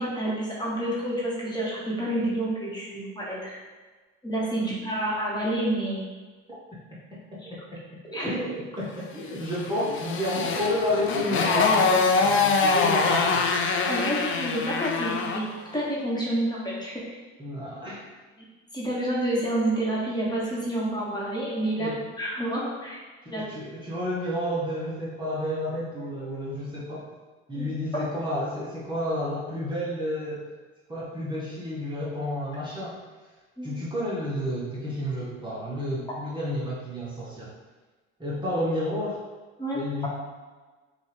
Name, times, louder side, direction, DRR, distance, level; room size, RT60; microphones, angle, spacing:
voice 1, 0.0-3.6 4.2-6.1 8.1-8.3 13.9-15.4 15.7-17.0 18.7-23.0 23.3-23.4 27.6-27.7 27.9-28.0 33.6-33.8 39.6-40.1, right 1 dB, 15° left, -6 dB, 1.4 m, -29 dB
voice 2, 7.5-7.8 8.2-13.5 17.4-18.0 21.8-22.0 23.2-27.1 27.5-30.4 30.9-33.0 33.6-37.5 38.2-39.2 39.7-40.1, left 1 dB, 15° right, -7 dB, 1.1 m, -30 dB
Motorcycle, 9.4-15.5, left 4 dB, 45° left, 0.5 m, -24 dB
5.3 x 2.5 x 3.4 m, 1.3 s
supercardioid pair, 90°, 30 cm